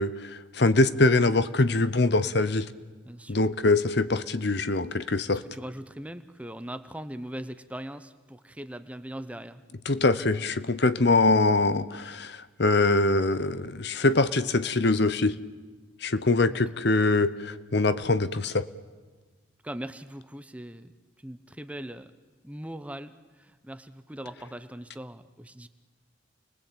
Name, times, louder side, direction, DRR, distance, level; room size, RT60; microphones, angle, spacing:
voice 1, 0.0-2.7 3.3-5.4 9.8-15.4 16.0-18.7, left 2 dB, 55° left, 14 dB, 0.9 m, -23 dB
voice 2, 3.1-3.5 5.3-9.6 16.5-16.6 19.6-20.9 21.2-22.1 22.4-25.7, right 1 dB, 5° right, 11 dB, 0.8 m, -40 dB
29.5 x 21.0 x 8.8 m, 1.4 s
head